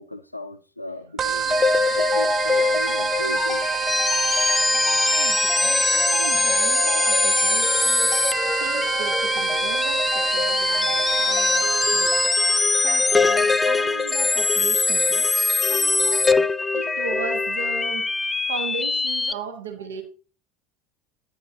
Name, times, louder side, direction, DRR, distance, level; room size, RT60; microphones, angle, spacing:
voice 1, 0.0-1.6 1.9-3.6, left 1 dB, 90° left, 0.5 m, -36 dB
sound 1, 1.2-12.6, right 8 dB, 35° right, 0.9 m, -27 dB
sound 2, 1.4-19.3, left 3 dB, 15° left, 0.4 m, -22 dB
voice 2, 4.6-12.1 12.7-16.3 16.7-18.1 18.5-20.0, right 5 dB, 75° right, 1.4 m, -36 dB
9.8 x 8.7 x 2.8 m
figure-of-eight pair, 70°, 0 cm